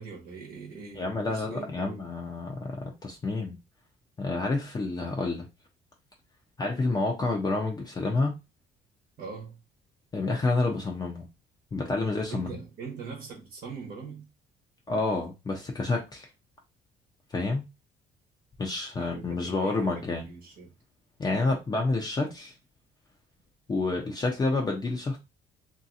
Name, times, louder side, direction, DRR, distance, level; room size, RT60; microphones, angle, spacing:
voice 1, 0.0-2.0 9.2-9.6 12.3-14.3 18.9-20.7, right 5 dB, 60° right, 1.1 m, -42 dB
voice 2, 0.9-3.6 4.2-5.5 6.6-8.3 10.1-11.3 11.7-12.6 14.9-16.3 17.3-17.6 18.6-20.3 21.2-22.5 23.7-25.2, left 3 dB, 25° left, 0.7 m, -29 dB
2.9 x 2.8 x 2.6 m
cardioid pair, 110°, 17 cm